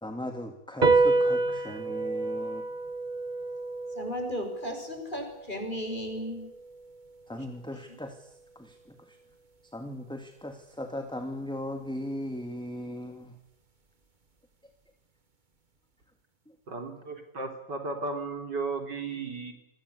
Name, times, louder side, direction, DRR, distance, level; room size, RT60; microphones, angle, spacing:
voice 1, 0.0-2.6 7.3-9.2 9.7-13.4 16.5-16.6, left 1 dB, 5° left, 5 dB, 2.2 m, -38 dB
sound 1, 0.8-7.5, right 3 dB, 30° right, 1.6 m, -29 dB
voice 2, 4.0-6.5 7.9-8.0, equal, 25° left, 4 dB, 6.9 m, -35 dB
voice 3, 16.7-19.5, right 3 dB, 75° right, 5 dB, 4.6 m, -35 dB
29.5 x 22.5 x 8.4 m, 0.85 s
omnidirectional pair, 1.9 m